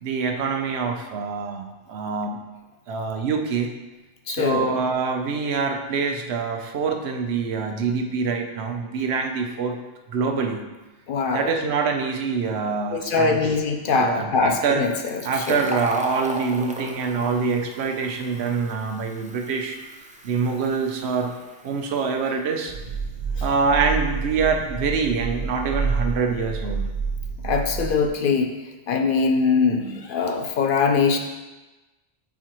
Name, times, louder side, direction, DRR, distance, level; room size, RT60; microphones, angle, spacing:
voice 1, 0.0-2.4 2.9-3.7 4.3-9.8 10.1-10.6 11.3-13.4 13.9-14.9 15.2-19.8 20.2-21.3 21.6-22.7 23.4-26.8, right 5 dB, 80° right, 4 dB, 0.9 m, -25 dB
voice 2, 4.3-4.7 11.1-11.5 12.9-15.6 27.4-28.5 28.9-31.2, left 5 dB, 60° left, 5 dB, 0.7 m, -22 dB
Fill (with liquid), 14.9-22.2, equal, 15° right, 0.3 m, -37 dB
sound 1, 22.7-28.1, right 5 dB, 55° right, 0.8 m, -29 dB
7.2 x 4.7 x 3.0 m, 1.1 s
omnidirectional pair, 1.1 m